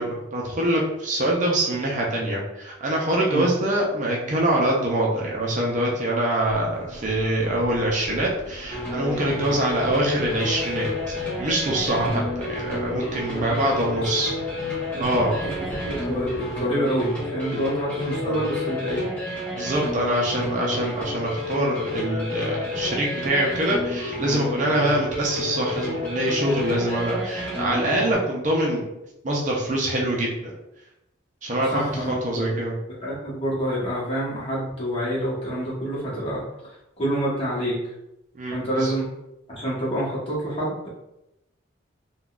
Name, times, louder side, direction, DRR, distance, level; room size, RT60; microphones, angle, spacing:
voice 1, 0.0-10.9 11.4-14.3 15.0-15.4 18.3-18.4 19.5-28.9 29.2-30.3 31.4-31.8 32.1-32.7 38.3-38.9, right 1 dB, 40° right, -2 dB, 0.5 m, -24 dB
sound 1, 6.5-16.6, equal, 75° left, 0.7 m, -42 dB
sound 2, 8.7-28.1, left 2 dB, 5° left, 0.8 m, -30 dB
voice 2, 13.2-14.1 14.9-15.6 15.8-19.0 31.7-32.6 33.0-37.8 38.5-39.1 39.5-40.9, right 1 dB, 30° left, -7 dB, 1.0 m, -28 dB
3.6 x 2.2 x 2.4 m, 0.88 s
head